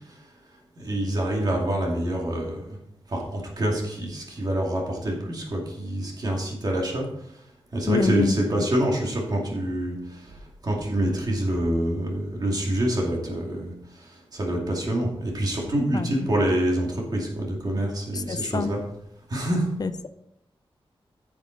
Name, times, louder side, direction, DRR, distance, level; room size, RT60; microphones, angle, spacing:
voice 1, 0.8-2.7 3.1-7.1 7.7-10.4 10.6-18.8 19.3-19.7, right 1 dB, 45° right, -1 dB, 2.3 m, -26 dB
voice 2, 7.9-8.3 15.9-16.1 18.1-18.7 19.8-20.1, left 4 dB, 40° left, 11 dB, 0.6 m, -26 dB
9.7 x 7.4 x 3.9 m, 0.77 s
wide cardioid pair, 165°, 10 cm